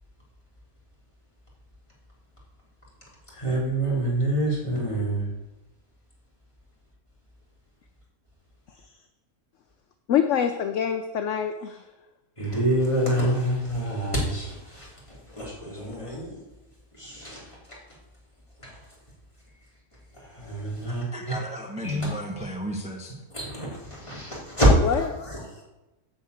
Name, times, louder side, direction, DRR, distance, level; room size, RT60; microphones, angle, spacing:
voice 1, 3.3-5.3 12.4-16.4 17.0-17.8 18.6-18.7 20.2-21.3 21.8-22.1 23.3-24.7 25.0-25.6, right 1 dB, 20° left, -6 dB, 3.4 m, -27 dB
voice 2, 10.1-11.8 24.6-25.1, left 8 dB, 60° left, 7 dB, 0.9 m, -25 dB
voice 3, 20.9-23.1, right 1 dB, 5° right, 0 dB, 0.8 m, -35 dB
10.0 x 4.8 x 8.0 m, 1.0 s
omnidirectional pair, 1.6 m